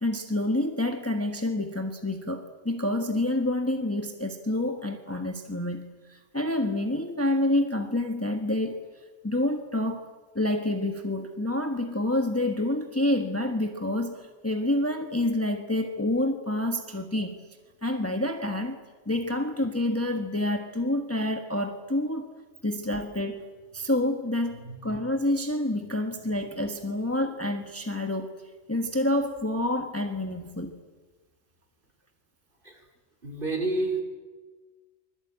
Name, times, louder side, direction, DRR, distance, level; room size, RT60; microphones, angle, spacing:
voice 1, 0.0-8.8 9.2-10.1 10.3-17.4 17.8-18.8 19.1-22.3 22.6-23.4 23.7-28.3 28.7-30.8, left 1 dB, 10° left, 5 dB, 1.4 m, -28 dB
voice 2, 33.2-34.0, right 2 dB, 45° right, 2 dB, 5.2 m, -30 dB
25.0 x 21.5 x 8.9 m, 1.3 s
omnidirectional pair, 1.3 m